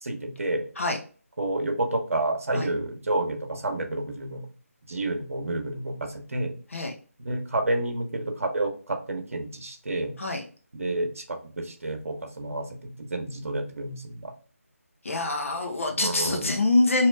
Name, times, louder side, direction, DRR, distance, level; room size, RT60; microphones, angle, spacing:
voice 1, 0.0-0.6 1.4-4.4 4.9-6.5 7.2-10.1 10.7-14.3 15.9-16.5, right 2 dB, 60° right, 4 dB, 1.0 m, -30 dB
voice 2, 15.0-17.1, left 2 dB, 60° left, 1 dB, 1.2 m, -24 dB
3.1 x 3.0 x 3.3 m, 0.40 s
figure-of-eight pair, 160°, 8 cm